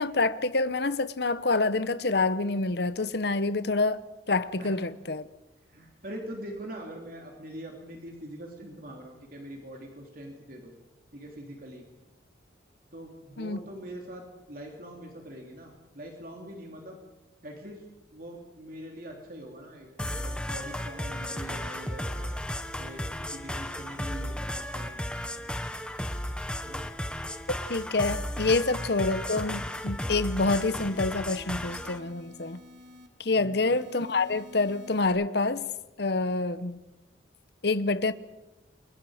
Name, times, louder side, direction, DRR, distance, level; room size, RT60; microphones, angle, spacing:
voice 1, 0.0-4.0 4.3-5.2 13.4-13.6 27.7-32.6 33.2-35.7 36.0-36.8 37.6-38.1, left 3 dB, 55° left, 0.9 m, -27 dB
voice 2, 5.7-10.7 11.1-11.8 12.9-17.0 17.4-17.8 18.1-22.4 22.8-23.0 23.3-25.0 26.6-26.9 33.3-33.7, right 1 dB, 45° right, 3.1 m, -43 dB
sound 1, 20.0-32.0, left 1 dB, 5° left, 1.1 m, -34 dB
sound 2, 31.6-33.1 33.6-35.1, left 2 dB, 75° right, 3.8 m, -52 dB
29.0 x 23.0 x 5.0 m
head